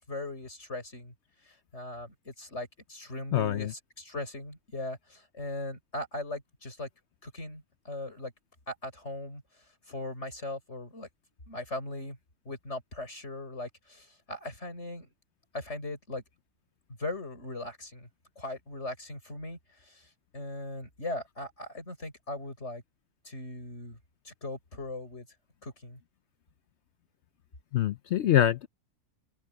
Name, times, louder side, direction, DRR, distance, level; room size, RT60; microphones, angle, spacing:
voice 1, 0.1-1.1 1.4-6.9 7.2-8.3 8.7-11.1 11.5-12.2 12.5-15.1 15.5-16.2 17.0-18.1 18.4-22.8 23.2-24.0 24.2-25.3 25.6-26.0, left 2 dB, 45° left, 6.8 m, -39 dB
voice 2, 3.3-3.7 27.7-28.7, left 11 dB, 70° left, 0.7 m, -25 dB
open air
omnidirectional pair, 1.6 m